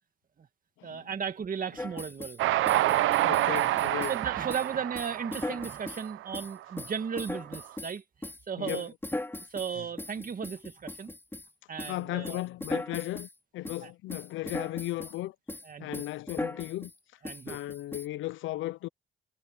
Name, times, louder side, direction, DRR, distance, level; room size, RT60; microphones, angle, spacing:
voice 1, 0.8-2.4 2.7-3.1 4.1-8.9 9.5-11.1 11.7-12.4 13.8-13.9 15.6-16.0 17.2-17.6, right 7 dB, 45° right, 2.1 m, -36 dB
sound 1, 1.8-2.4 2.7-4.2 4.5-4.7 4.9-6.1 6.3-11.5 11.8-12.0 12.2-13.3 13.6-13.8 14.1-15.2 15.5-15.7 15.9-16.9 17.2-18.1, left 2 dB, 10° left, 4.6 m, -39 dB
Train, 2.4-6.8, right 15 dB, 85° right, 0.7 m, -28 dB
voice 2, 3.2-4.1 8.6-8.8 11.9-13.3 13.5-15.3 15.8-16.9 17.5-18.9, left 16 dB, 85° left, 0.6 m, -35 dB
cardioid pair, 90°, 20 cm